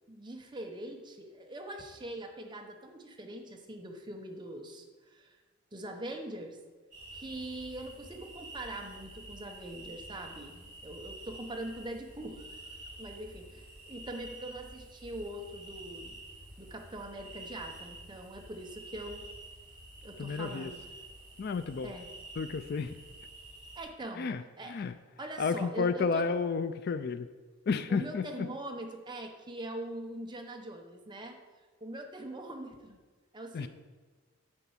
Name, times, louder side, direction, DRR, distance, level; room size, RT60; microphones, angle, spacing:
voice 1, 0.1-5.4 5.7-6.6 7.1-12.6 13.0-16.2 16.6-19.2 20.0-20.8 21.8-22.1 23.8-24.8 25.2-26.3 27.9-31.4 31.8-33.0 33.3-33.7, right 1 dB, 20° right, 3 dB, 1.0 m, -42 dB
sound 1, 6.9-23.8, right 1 dB, 35° right, 3.1 m, -49 dB
voice 2, 20.2-20.7 21.4-21.9 22.4-23.0 24.2-24.9 25.4-27.3 27.7-28.5 33.5-33.7, left 5 dB, 45° left, 11 dB, 0.4 m, -32 dB
9.8 x 4.5 x 7.2 m, 1.3 s
head